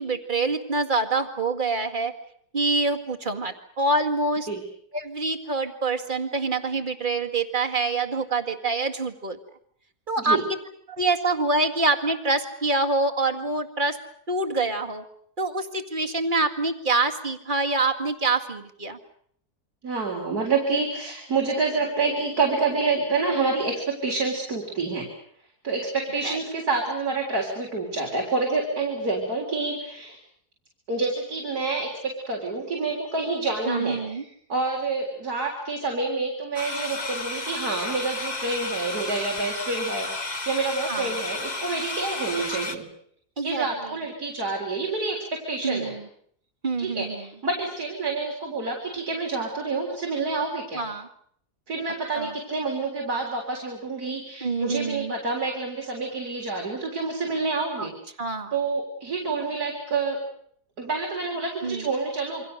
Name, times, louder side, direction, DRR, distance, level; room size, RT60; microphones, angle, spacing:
voice 1, 0.0-2.1 2.5-4.5 4.9-9.4 10.1-10.4 10.9-14.0 14.3-15.0 15.4-19.0 26.2-26.4 33.7-34.2 40.9-41.1 43.4-43.6 45.6-46.0 46.6-47.2 50.7-51.1 52.1-52.3 54.4-55.1 57.8-57.9 58.2-58.5 61.6-61.9, right 3 dB, 30° right, 4 dB, 2.1 m, -26 dB
voice 2, 19.8-25.1 25.6-30.2 30.9-42.9 43.4-45.9 46.8-50.9 51.7-57.9 58.5-60.2 60.8-62.4, right 3 dB, 75° right, 0 dB, 4.4 m, -28 dB
sound 1, 36.5-42.7, left 2 dB, 30° left, 1.6 m, -32 dB
28.0 x 24.5 x 6.6 m, 0.64 s
omnidirectional pair, 1.6 m